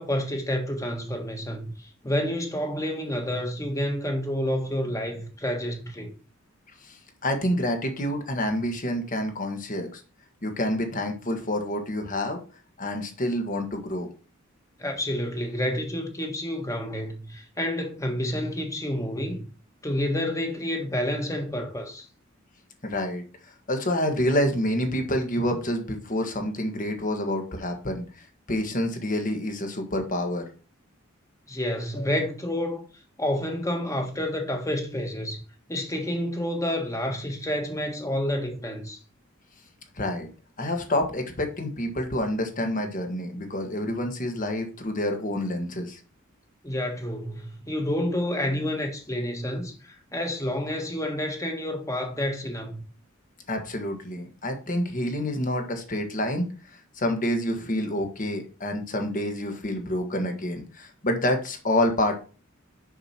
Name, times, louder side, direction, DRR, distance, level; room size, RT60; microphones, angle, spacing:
voice 1, 0.0-6.1 14.8-19.4 19.8-22.0 31.5-32.8 33.2-35.4 35.7-39.0 46.6-52.8, left 1 dB, 15° left, 1.5 m, -29 dB
voice 2, 6.8-10.0 10.4-12.4 12.8-14.1 22.8-30.4 32.0-32.1 39.9-40.3 40.6-46.0 53.5-62.1, left 1 dB, 40° left, 1.6 m, -28 dB
6.7 x 6.0 x 4.4 m
head